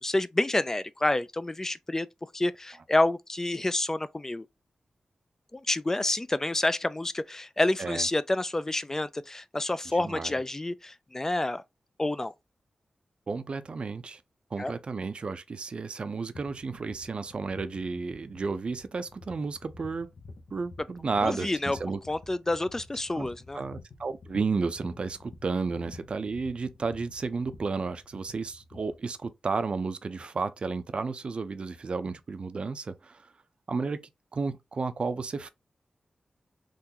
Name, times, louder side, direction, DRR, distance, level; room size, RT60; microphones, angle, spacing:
voice 1, 0.0-2.1 2.3-4.5 5.5-11.6 12.0-12.3 14.6-14.7 21.2-21.8 22.1-23.6, left 2 dB, 20° left, 0.3 m, -28 dB
voice 2, 9.9-10.3 13.3-14.2 14.5-20.1 20.5-22.0 23.2-23.3 23.5-33.3 33.7-35.5, right 4 dB, 55° right, 0.5 m, -32 dB
sound 1, 16.3-29.0, left 3 dB, 75° left, 0.8 m, -50 dB
3.7 x 2.5 x 2.8 m
cardioid pair, 70°, 2 cm